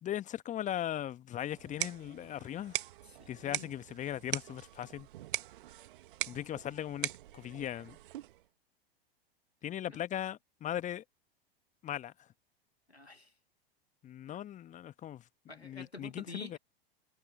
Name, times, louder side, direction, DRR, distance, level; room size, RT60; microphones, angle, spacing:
voice 1, 0.0-2.8 3.3-5.1 6.3-8.0 9.6-11.0 11.8-12.1 14.0-15.2 15.5-16.6, left 11 dB, 25° left, 1.3 m, -38 dB
sound 1, 1.5-8.5, right 14 dB, 55° right, 2.0 m, -41 dB
voice 2, 3.1-3.7 9.9-10.0 12.9-13.3 14.3-14.4 15.5-16.6, left 3 dB, 90° left, 2.4 m, -48 dB
figure-of-eight pair, 90°, 30 cm